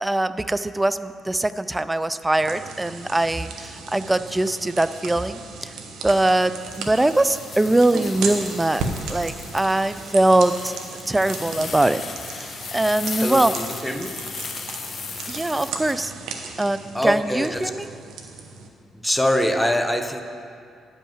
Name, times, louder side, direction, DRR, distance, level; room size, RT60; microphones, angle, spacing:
voice 1, 0.0-5.7 6.0-8.8 9.1-10.7 11.1-12.0 12.3-13.5 15.3-16.1 16.6-17.9, right 2 dB, 15° right, 13 dB, 0.3 m, -22 dB
sound 1, 2.4-18.7, right 4 dB, 80° right, 1.0 m, -36 dB
sound 2, 6.7-15.9, left 6 dB, 45° left, 0.5 m, -36 dB
voice 2, 13.2-14.2 16.9-17.7 18.9-20.2, left 1 dB, 5° left, 6 dB, 0.8 m, -24 dB
10.0 x 5.5 x 7.2 m, 2.4 s
cardioid pair, 90°, 0 cm